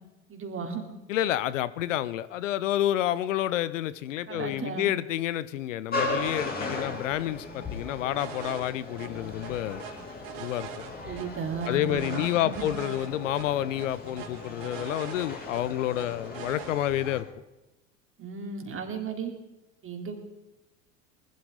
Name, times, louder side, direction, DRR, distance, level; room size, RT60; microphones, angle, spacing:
voice 1, 0.3-0.9 4.3-4.9 11.1-12.8 18.2-19.3 19.8-20.1, right 5 dB, 35° right, 3 dB, 3.6 m, -35 dB
voice 2, 1.1-9.8 10.4-10.7 11.7-17.3, left 12 dB, 75° left, 17 dB, 0.8 m, -29 dB
sound 1, 5.9-17.2, left 2 dB, 25° left, 4.7 m, -37 dB
sound 2, 8.2-8.7 9.0-9.1 9.4-11.3 11.6-13.1 13.3-13.5 13.8-15.6 16.0-16.7, right 9 dB, 60° right, 2.1 m, -42 dB
20.5 x 12.5 x 4.0 m, 1.0 s
hypercardioid pair, 75°, 38 cm